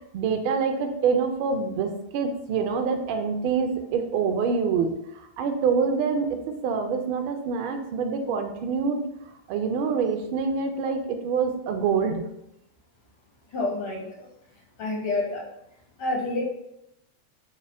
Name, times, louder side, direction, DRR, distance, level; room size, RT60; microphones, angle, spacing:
voice 1, 0.1-9.0 9.5-12.2, right 5 dB, 45° right, 6 dB, 0.4 m, -26 dB
voice 2, 13.5-14.3 14.8-15.4 16.0-16.5, left 2 dB, 45° left, -1 dB, 1.1 m, -28 dB
3.7 x 2.0 x 3.3 m, 0.82 s
figure-of-eight pair, 90°, 0 cm